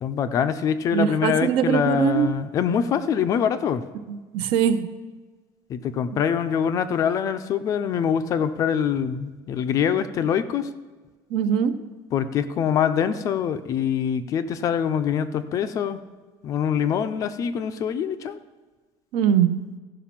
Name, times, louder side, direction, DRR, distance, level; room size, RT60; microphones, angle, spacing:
voice 1, 0.0-3.8 5.7-10.7 12.1-16.0 16.4-18.4, left 8 dB, 30° left, 11 dB, 0.4 m, -24 dB
voice 2, 0.9-2.3 4.1-4.9 11.3-11.7 19.1-19.5, right 8 dB, 60° right, 11 dB, 0.6 m, -21 dB
15.0 x 5.1 x 5.8 m, 1.3 s
cardioid pair, 180°, 10 cm